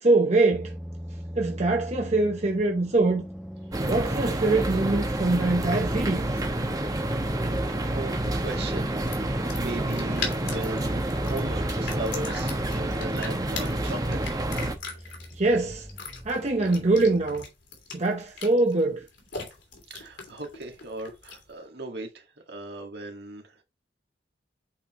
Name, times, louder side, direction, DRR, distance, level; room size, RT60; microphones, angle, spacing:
voice 1, 0.0-0.7 1.3-3.3 3.8-6.3 15.3-15.9 16.2-17.5 17.9-19.0, right 2 dB, 40° right, 0.9 m, -23 dB
sound 1, 0.5-17.5, equal, 5° right, 0.6 m, -42 dB
sound 2, 3.7-14.7, right 1 dB, 20° right, 0.9 m, -28 dB
sound 3, 6.7-21.6, left 5 dB, 75° left, 3.1 m, -41 dB
voice 2, 7.5-14.4 19.9-23.4, right 2 dB, 65° right, 1.8 m, -37 dB
8.4 x 4.8 x 3.1 m
head